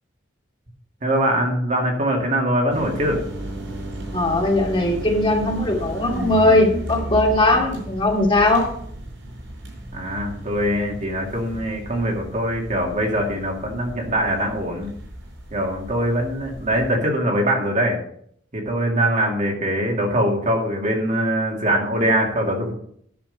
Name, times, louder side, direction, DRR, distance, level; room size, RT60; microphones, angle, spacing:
voice 1, 1.0-3.2 9.9-14.9 15.5-18.0 18.5-22.7, right 1 dB, 40° right, 0 dB, 2.3 m, -22 dB
sound 1, 2.7-17.0, right 1 dB, 75° right, 4.7 m, -34 dB
voice 2, 4.1-8.7, left 2 dB, 30° left, -1 dB, 2.6 m, -19 dB
10.5 x 7.0 x 5.3 m, 0.66 s
head